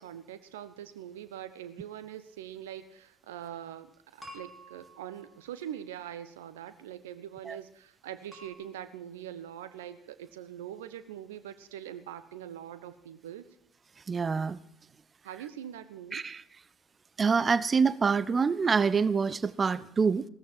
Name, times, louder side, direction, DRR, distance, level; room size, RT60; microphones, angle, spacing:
voice 1, 0.0-13.4 15.2-16.2, right 10 dB, 75° right, 13 dB, 0.9 m, -43 dB
sound 1, 4.2-5.8 8.3-8.5, equal, ahead, 4.9 m, -50 dB
voice 2, 14.1-14.6 16.1-16.4 17.2-20.3, right 5 dB, 30° right, 19 dB, 0.6 m, -26 dB
17.0 x 14.0 x 4.6 m, 0.79 s
figure-of-eight pair, 60°, 0 cm